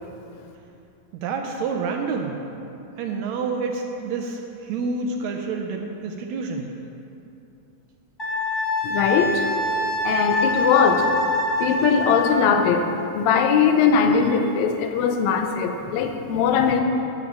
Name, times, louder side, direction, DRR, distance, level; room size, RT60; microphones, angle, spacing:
voice 1, 1.2-2.4 3.0-6.7, right 4 dB, 80° right, 3 dB, 1.8 m, -28 dB
Wind instrument woodwind instrument, 8.2-12.5, left 1 dB, 15° left, 0.9 m, -25 dB
voice 2, 8.8-11.1 11.6-12.9 13.1-16.8, left 6 dB, 75° left, 5 dB, 1.8 m, -20 dB
11.5 x 3.9 x 7.3 m, 2.8 s
omnidirectional pair, 3.5 m